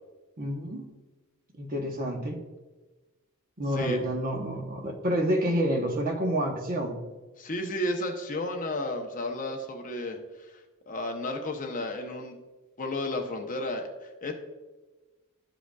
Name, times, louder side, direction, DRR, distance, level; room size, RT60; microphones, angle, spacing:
voice 1, 0.4-0.8 1.6-2.4 3.6-7.0, equal, 40° right, 2 dB, 1.0 m, -28 dB
voice 2, 3.6-4.0 7.4-10.6 10.9-12.4 12.8-14.3, left 1 dB, 35° left, 3 dB, 0.7 m, -33 dB
12.0 x 5.0 x 2.3 m, 1.2 s
head